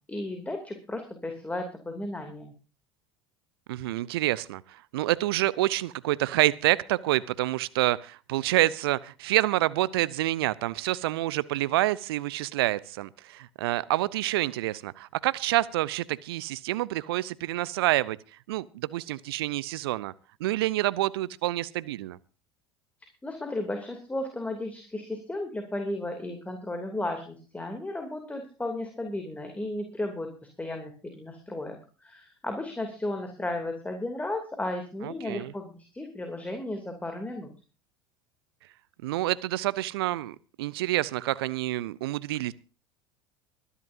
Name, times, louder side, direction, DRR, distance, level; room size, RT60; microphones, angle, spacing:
voice 1, 0.1-2.5 23.2-30.3 30.6-37.5, left 1 dB, 10° left, 5 dB, 2.8 m, -34 dB
voice 2, 3.7-18.2 18.5-20.1 20.4-22.2 35.0-35.5 39.0-42.5, right 16 dB, 65° right, 20 dB, 0.6 m, -27 dB
24.0 x 11.0 x 2.7 m, 0.36 s
figure-of-eight pair, 70°, 14 cm